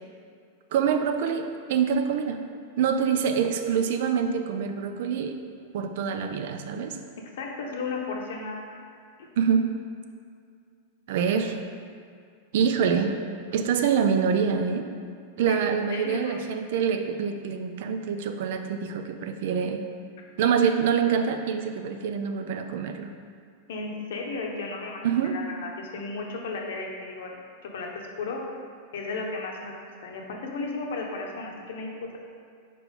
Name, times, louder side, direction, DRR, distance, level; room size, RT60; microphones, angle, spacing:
voice 1, 0.7-2.4 2.8-5.4 5.7-7.0 9.4-9.7 11.1-11.6 12.5-13.1 13.5-14.9 15.4-19.8 20.4-23.1 25.0-25.4, right 7 dB, 65° right, 7 dB, 0.5 m, -25 dB
voice 2, 7.2-8.8 9.2-9.3 15.5-15.6 15.9-16.4 23.7-27.4 27.7-27.9 28.2-28.4 28.9-29.7 30.0-31.9, left 3 dB, 75° left, 0 dB, 1.0 m, -34 dB
4.5 x 4.3 x 5.3 m, 2.3 s
supercardioid pair, 155°, 0 cm